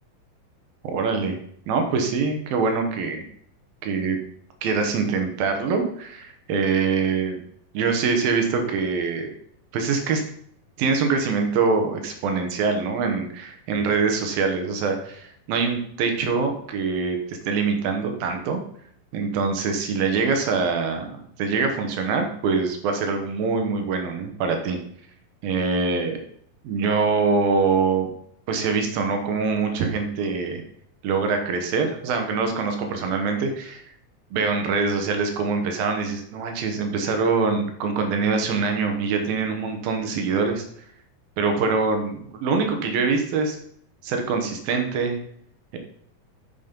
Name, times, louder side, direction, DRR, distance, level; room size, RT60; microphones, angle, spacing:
voice 1, 0.8-1.4 1.7-3.2 3.8-4.2 4.6-7.4 7.7-9.3 9.7-10.2 10.8-18.6 19.1-24.8 25.4-26.2 26.6-28.1 28.5-30.6 31.0-33.8 34.3-40.6 41.4-43.6 44.0-45.2 45.7-45.8, right 4 dB, 85° right, 5 dB, 3.1 m, -24 dB
9.4 x 6.2 x 5.3 m, 0.66 s
omnidirectional pair, 4.0 m